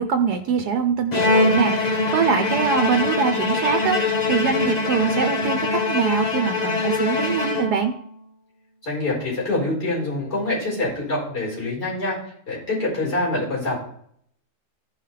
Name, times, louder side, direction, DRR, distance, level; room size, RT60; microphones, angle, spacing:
voice 1, 0.0-7.9, right 6 dB, 75° right, 6 dB, 1.3 m, -23 dB
Bowed string instrument, 1.1-8.1, left 3 dB, 40° left, 0.6 m, -23 dB
voice 2, 8.8-12.2 12.5-13.8, left 2 dB, 75° left, -3 dB, 5.3 m, -25 dB
15.0 x 5.6 x 3.3 m, 0.65 s
omnidirectional pair, 1.7 m